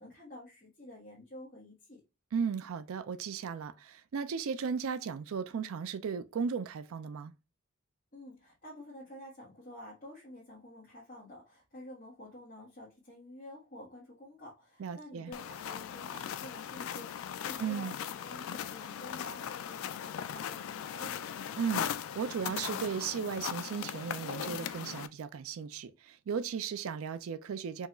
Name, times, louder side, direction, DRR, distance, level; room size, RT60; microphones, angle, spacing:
voice 1, 0.0-2.0 8.1-21.3, left 1 dB, 40° left, 1.3 m, -50 dB
voice 2, 2.3-7.3 14.8-15.3 17.6-17.9 21.6-27.9, right 6 dB, 80° right, 0.4 m, -36 dB
sound 1, 15.3-25.1, left 9 dB, 80° left, 0.3 m, -39 dB
4.4 x 2.4 x 2.9 m
head